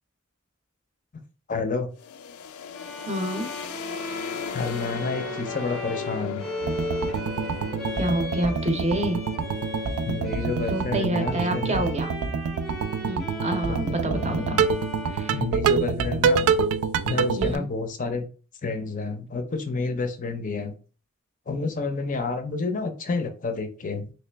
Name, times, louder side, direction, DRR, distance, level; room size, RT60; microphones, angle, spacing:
voice 1, 1.5-1.9 4.5-6.4 10.1-11.9 13.7-14.7 15.3-16.5 17.0-18.3 18.6-20.7 21.5-24.1, left 4 dB, 35° left, 6 dB, 0.5 m, -30 dB
sound 1, 2.0-13.6, left 8 dB, 90° left, 0.4 m, -39 dB
Bowed string instrument, 2.7-16.2, equal, ahead, 0.8 m, -37 dB
voice 2, 3.0-3.5 8.0-9.2 10.7-12.1 13.0-14.6 15.1-15.3 17.4-17.7, right 1 dB, 30° right, 5 dB, 0.6 m, -28 dB
sound 2, 6.6-17.6, right 5 dB, 80° right, 0.3 m, -26 dB
3.2 x 3.0 x 3.3 m, 0.37 s
head